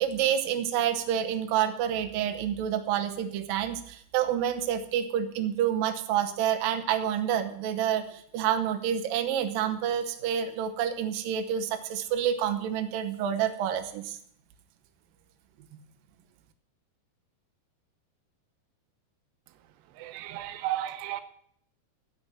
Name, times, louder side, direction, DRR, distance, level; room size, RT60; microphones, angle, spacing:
voice 1, 0.0-14.2, right 9 dB, 70° right, 7 dB, 2.6 m, -28 dB
voice 2, 20.0-21.2, right 13 dB, 90° right, 10 dB, 3.0 m, -33 dB
16.0 x 5.3 x 9.6 m, 0.65 s
omnidirectional pair, 4.7 m